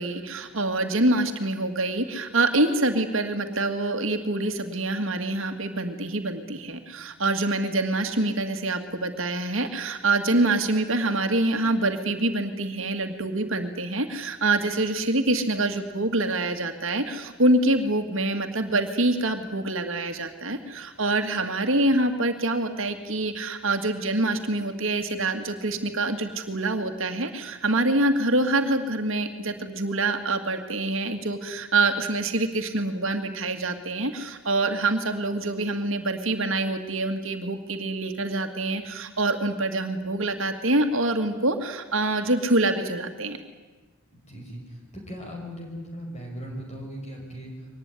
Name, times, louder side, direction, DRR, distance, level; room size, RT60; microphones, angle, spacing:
voice 1, 0.0-43.4, right 2 dB, 60° right, 6 dB, 2.2 m, -25 dB
voice 2, 44.1-47.5, equal, 30° left, 1 dB, 5.6 m, -38 dB
24.0 x 19.5 x 9.8 m, 1.2 s
head